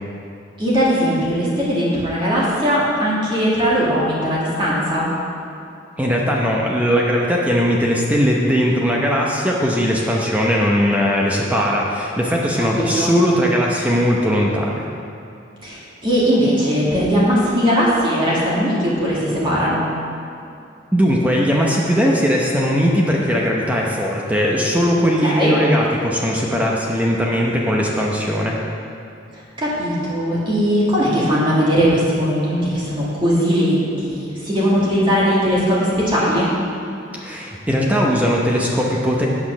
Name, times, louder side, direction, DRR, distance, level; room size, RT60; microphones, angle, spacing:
voice 1, 0.6-5.1 12.7-13.2 15.6-19.8 25.2-25.6 29.3-36.5, equal, 25° right, -7 dB, 1.9 m, -19 dB
voice 2, 6.0-14.8 20.9-28.6 37.1-39.3, equal, 10° right, -3 dB, 0.7 m, -19 dB
8.7 x 5.9 x 6.1 m, 2.6 s
head